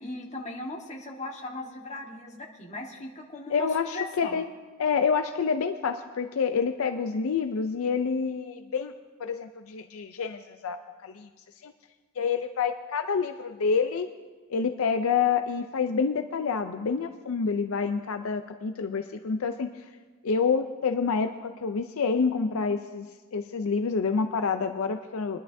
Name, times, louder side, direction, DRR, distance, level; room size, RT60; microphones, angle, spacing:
voice 1, 0.0-4.4, left 2 dB, 30° left, 0 dB, 1.4 m, -38 dB
voice 2, 3.5-4.4 4.8-8.9 9.2-10.8 11.0-11.3 11.6-11.7 12.2-14.1 14.5-19.7 20.2-23.1 23.3-25.4, left 5 dB, 70° left, 8 dB, 0.5 m, -27 dB
22.5 x 11.0 x 2.7 m, 1.3 s
head